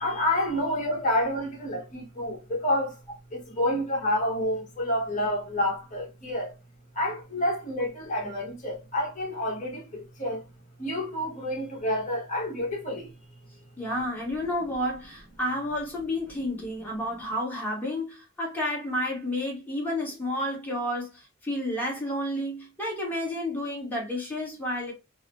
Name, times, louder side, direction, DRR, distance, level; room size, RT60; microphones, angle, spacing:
voice 1, 0.0-2.9 3.3-6.5 7.0-9.8 10.2-10.4 10.8-13.0, left 1 dB, 35° left, 1.2 m, -28 dB
voice 2, 13.8-24.9, left 1 dB, 10° left, 1.3 m, -31 dB
3.8 x 2.1 x 2.9 m
head